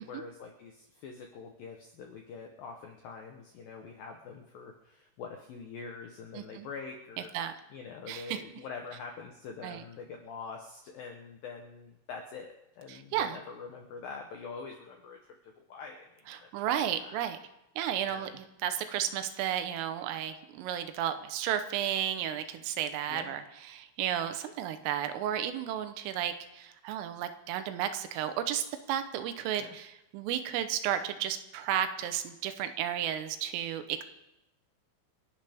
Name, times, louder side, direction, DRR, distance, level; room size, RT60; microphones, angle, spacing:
voice 1, 0.0-7.3 7.7-16.5 17.0-17.2 18.0-18.4 23.1-23.4 29.6-29.8, left 5 dB, 80° left, 3 dB, 2.0 m, -45 dB
voice 2, 6.4-6.7 7.4-7.5 8.1-8.4 9.6-9.8 12.9-13.4 16.3-17.4 17.8-23.4 23.7-34.0, right 10 dB, 90° right, 9 dB, 3.6 m, -33 dB
28.0 x 11.0 x 3.6 m, 0.90 s
omnidirectional pair, 5.7 m